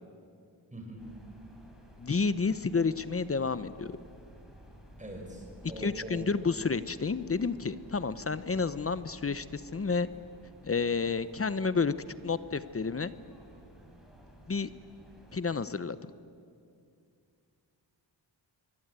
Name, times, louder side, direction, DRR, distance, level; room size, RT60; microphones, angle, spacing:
voice 1, 0.7-1.0 5.0-6.2, right 1 dB, 15° right, 1 dB, 7.0 m, -42 dB
sound 1, 1.0-15.4, equal, ahead, 6.3 m, -54 dB
voice 2, 2.0-3.9 5.8-10.1 10.6-11.9 12.2-13.1 14.5-14.7 15.3-16.0, left 4 dB, 30° left, 14 dB, 0.8 m, -30 dB
23.5 x 23.5 x 9.0 m, 2.4 s
wide cardioid pair, 100°, 44 cm